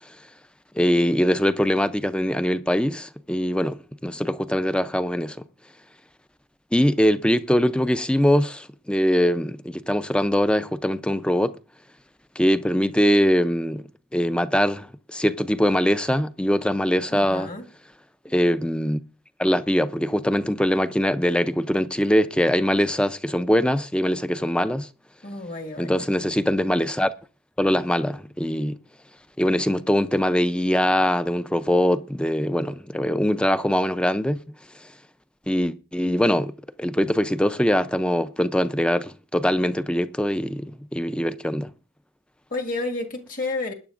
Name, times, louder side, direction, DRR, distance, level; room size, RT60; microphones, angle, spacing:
voice 1, 0.8-5.4 6.7-11.6 12.4-13.8 14.1-17.5 18.3-19.0 19.4-24.9 25.8-27.1 27.6-28.8 29.4-34.4 35.5-41.7, equal, 5° left, 0.5 m, -22 dB
voice 2, 17.1-17.7 25.2-26.0 42.5-43.7, left 2 dB, 40° left, 1.9 m, -31 dB
21.5 x 10.0 x 2.5 m
head